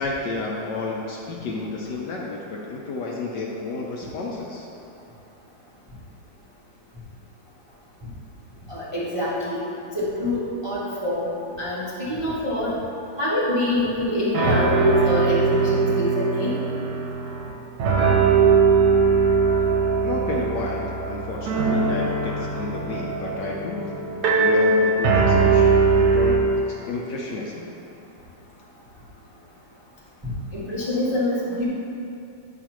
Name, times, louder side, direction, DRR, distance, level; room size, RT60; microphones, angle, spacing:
voice 1, 0.0-4.6 20.0-23.9 24.2-27.7, left 3 dB, 70° left, -2 dB, 1.1 m, -31 dB
voice 2, 8.7-9.6 9.9-11.3 11.6-12.8 13.2-16.5 30.5-31.6, left 1 dB, 25° right, -8 dB, 0.6 m, -25 dB
sound 1, 14.0-14.1 14.3-17.5 17.8-26.4, right 4 dB, 60° right, 1.2 m, -20 dB
9.0 x 6.1 x 3.0 m, 2.8 s
omnidirectional pair, 2.3 m